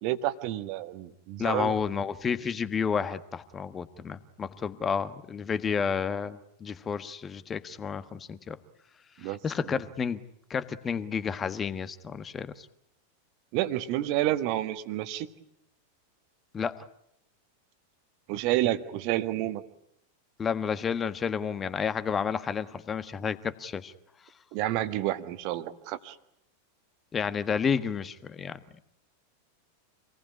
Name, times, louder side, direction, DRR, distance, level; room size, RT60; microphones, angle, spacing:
voice 1, 0.0-1.8 9.2-9.4 13.5-15.3 18.3-19.6 24.5-26.1, right 14 dB, 45° right, 11 dB, 1.6 m, -29 dB
voice 2, 1.4-8.6 9.2-10.2 10.5-12.7 16.5-16.8 20.4-23.9 27.1-28.6, left 6 dB, 20° left, 12 dB, 1.4 m, -31 dB
27.0 x 19.0 x 9.8 m, 0.75 s
figure-of-eight pair, 90°, 0 cm